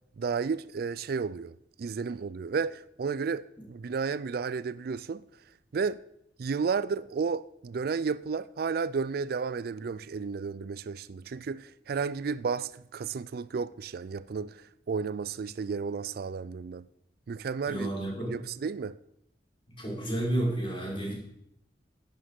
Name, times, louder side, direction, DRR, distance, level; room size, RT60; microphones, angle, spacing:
voice 1, 0.2-5.2 5.7-6.0 6.4-16.8 17.3-17.9 18.3-19.0, right 5 dB, 60° right, 0.4 m, -32 dB
voice 2, 17.7-18.3 19.7-21.2, right 1 dB, 30° left, 5.5 m, -31 dB
11.0 x 8.8 x 7.6 m
head